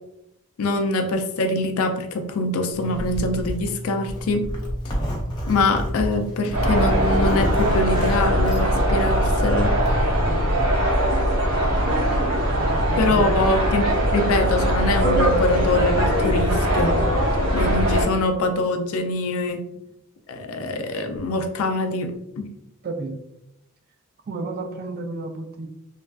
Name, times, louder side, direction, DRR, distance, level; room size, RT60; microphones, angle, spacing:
voice 1, 0.6-4.5 5.4-9.8 13.0-17.1 17.5-19.7 20.3-22.5, left 2 dB, 70° left, 6 dB, 0.4 m, -24 dB
Zipper (clothing), 2.7-10.0, equal, 20° left, 0.6 m, -31 dB
sound 1, 6.5-18.1, equal, 90° right, 0.9 m, -21 dB
voice 2, 12.6-13.4 22.8-23.2 24.3-25.7, right 3 dB, 40° right, 6 dB, 0.3 m, -32 dB
3.1 x 2.4 x 2.3 m, 0.83 s
head